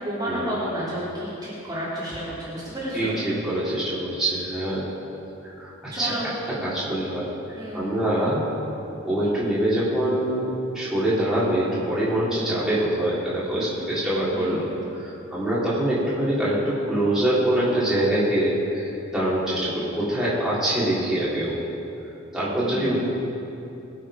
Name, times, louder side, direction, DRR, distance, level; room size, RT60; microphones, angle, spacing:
voice 1, 0.0-3.1 5.9-6.3 7.5-7.9 14.3-14.8 22.6-23.0, equal, 20° right, -9 dB, 3.2 m, -31 dB
voice 2, 2.9-4.8 5.6-6.1 6.6-7.3 7.7-8.4 9.0-10.4 10.7-14.7 15.0-21.6 22.3-23.0, right 1 dB, 5° right, -10 dB, 3.4 m, -24 dB
23.0 x 7.6 x 5.1 m, 2.9 s
head